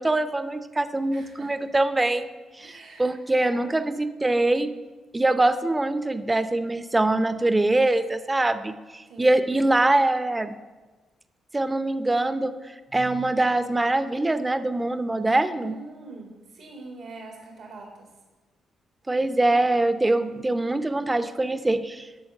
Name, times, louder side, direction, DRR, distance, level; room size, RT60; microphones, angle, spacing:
voice 1, 0.0-2.3 2.6-4.7 5.1-10.5 11.5-12.5 12.9-15.8 19.1-22.1, right 2 dB, 20° right, 11 dB, 0.6 m, -23 dB
voice 2, 1.1-1.6 2.6-3.9 9.0-9.6 15.5-18.1, right 3 dB, 85° right, 0 dB, 1.6 m, -44 dB
11.0 x 4.0 x 7.6 m, 1.2 s
supercardioid pair, 60°, 0 cm